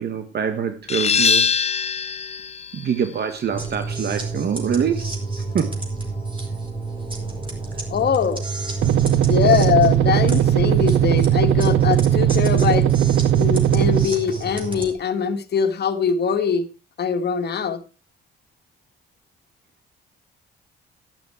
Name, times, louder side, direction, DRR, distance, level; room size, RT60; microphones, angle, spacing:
voice 1, 0.0-1.5 2.7-5.1 5.5-5.8, right 7 dB, 55° right, 8 dB, 1.5 m, -25 dB
sound 1, 0.9-6.3, left 6 dB, 30° left, 0.6 m, -25 dB
sound 2, 3.5-14.9, right 3 dB, 25° right, 4.6 m, -30 dB
voice 2, 7.9-8.4 9.3-12.9 13.3-16.7 17.0-17.8, left 7 dB, 55° left, 8 dB, 1.8 m, -22 dB
sound 3, 8.8-14.1, right 11 dB, 75° right, 0.9 m, -18 dB
11.5 x 11.0 x 4.6 m, 0.31 s
cardioid pair, 90°, 20 cm